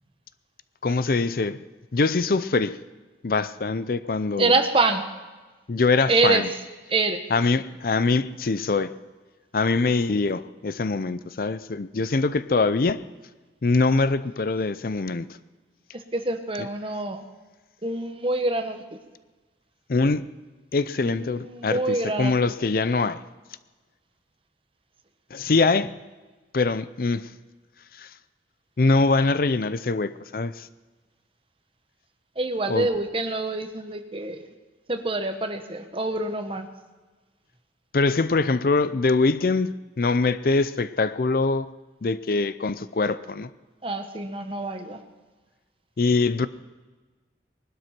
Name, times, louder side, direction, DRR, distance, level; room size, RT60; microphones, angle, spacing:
voice 1, 0.8-1.6 1.9-2.8 3.2-4.5 5.7-6.5 7.3-8.9 9.5-13.0 13.6-15.3 19.9-20.3 20.7-23.2 25.3-25.9 26.5-27.3 27.9-28.1 28.8-30.7 32.7-32.9 37.9-41.7 42.0-43.5 46.0-46.5, left 3 dB, 50° left, 0.5 m, -23 dB
voice 2, 4.4-5.0 6.1-6.4 6.9-7.2 15.9-17.2 17.8-19.0 21.0-22.3 32.3-34.5 34.9-36.7 43.8-45.0, right 2 dB, 30° right, 1.2 m, -26 dB
20.0 x 12.0 x 5.9 m
head